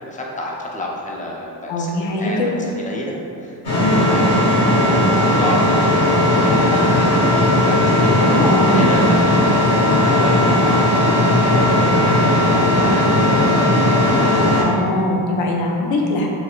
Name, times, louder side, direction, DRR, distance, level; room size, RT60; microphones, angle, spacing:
voice 1, 0.0-4.4 4.9-7.1 7.5-9.2 9.8-13.0, left 1 dB, 20° left, -2 dB, 0.5 m, -30 dB
voice 2, 1.7-2.5 3.8-4.0 8.2-8.8 14.6-16.3, left 2 dB, 90° left, -1 dB, 0.6 m, -21 dB
sound 1, 3.6-14.6, left 1 dB, 60° left, 1.4 m, -16 dB
4.6 x 2.1 x 2.3 m, 2.6 s
cardioid pair, 70°, 44 cm